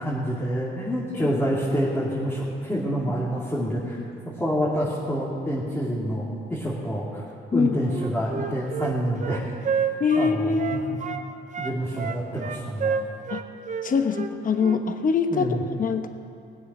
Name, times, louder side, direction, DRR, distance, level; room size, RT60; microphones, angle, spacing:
voice 1, 0.0-4.0 4.4-7.2 7.5-9.8 10.2-11.0 11.6-13.0 15.3-15.6, equal, 10° left, -7 dB, 2.8 m, -27 dB
Wind instrument woodwind instrument, 7.8-11.3 11.5-14.8, right 6 dB, 40° right, 0.9 m, -30 dB
voice 2, 10.0-11.1 13.3-13.4 13.8-15.5 15.8-16.1, left 5 dB, 45° left, 7 dB, 1.1 m, -24 dB
19.5 x 8.0 x 6.2 m, 2.6 s
cardioid pair, 90°, 20 cm